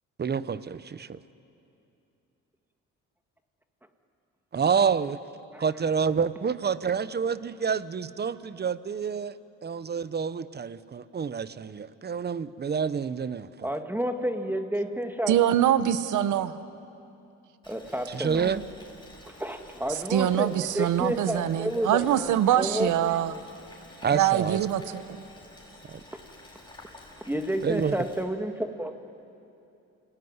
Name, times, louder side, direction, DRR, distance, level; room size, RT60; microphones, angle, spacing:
voice 1, 0.2-1.2 4.5-5.2 5.6-13.7 18.1-18.6 24.0-24.7 25.9-26.0 27.6-28.0, right 6 dB, 35° right, 16 dB, 0.9 m, -28 dB
voice 2, 13.6-15.3 17.7-18.5 19.4-20.5 20.7-22.9 27.3-28.9, right 1 dB, 5° right, 6 dB, 1.8 m, -30 dB
voice 3, 15.3-16.5 19.9-23.4 24.1-25.0, right 11 dB, 80° right, 13 dB, 1.1 m, -24 dB
Boiling, 17.6-28.2, left 1 dB, 15° left, 8.0 m, -50 dB
29.0 x 18.5 x 9.6 m, 2.7 s
cardioid pair, 90°, 30 cm